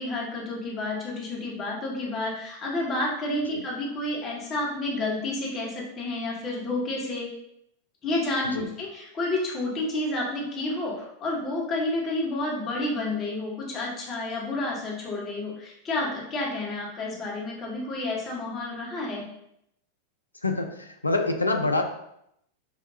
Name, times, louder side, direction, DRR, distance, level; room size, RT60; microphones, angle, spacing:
voice 1, 0.0-7.3 8.0-19.2, left 2 dB, 30° left, -3 dB, 1.1 m, -30 dB
voice 2, 20.4-21.8, left 2 dB, 80° left, 5 dB, 0.4 m, -26 dB
4.4 x 2.2 x 2.7 m, 0.76 s
figure-of-eight pair, 90°, 0 cm